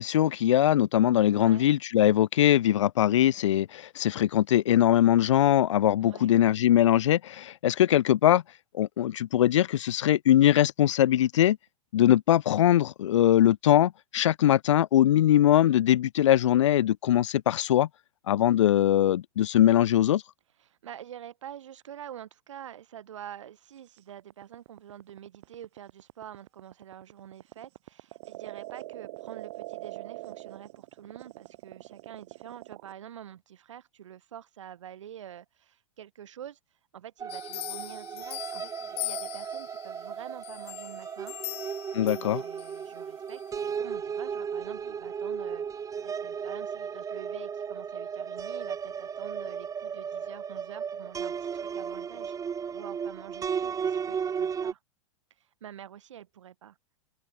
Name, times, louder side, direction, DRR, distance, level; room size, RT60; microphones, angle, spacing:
voice 1, 0.0-8.4 8.7-11.6 11.9-17.9 18.3-20.2 41.9-42.4, left 12 dB, 70° left, 0.4 m, -22 dB
voice 2, 1.3-1.7 6.0-6.4 20.6-36.6 36.9-41.4 42.0-45.7 46.0-52.3 52.7-54.8 55.4-56.8, right 10 dB, 70° right, 7.8 m, -46 dB
sound 1, 24.0-32.9, right 19 dB, 55° right, 2.0 m, -43 dB
sound 2, 37.2-54.7, right 7 dB, 20° right, 6.2 m, -35 dB
sound 3, 37.3-39.9 40.4-42.8 43.3-43.4, left 17 dB, 40° left, 3.5 m, -40 dB
open air
hypercardioid pair, 100°, 16 cm